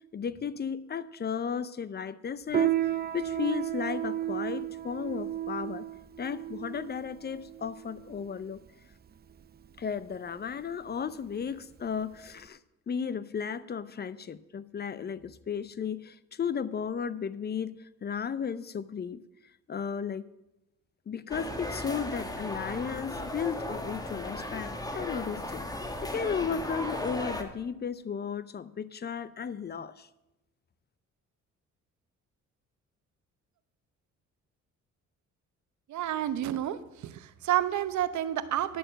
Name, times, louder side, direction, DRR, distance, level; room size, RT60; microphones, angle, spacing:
voice 1, 0.1-2.8 3.1-5.9 6.2-8.6 9.8-12.6 12.9-19.2 19.7-20.2 21.1-25.6 26.0-30.1, left 7 dB, 35° left, 17 dB, 0.5 m, -34 dB
Piano, 2.5-12.5, right 11 dB, 30° right, 0.6 m, -34 dB
sound 1, 21.3-27.4, left 1 dB, 10° left, 1.3 m, -36 dB
voice 2, 35.9-38.8, right 12 dB, 70° right, 13 dB, 0.9 m, -30 dB
10.0 x 6.6 x 7.7 m, 0.95 s
cardioid pair, 90°, 30 cm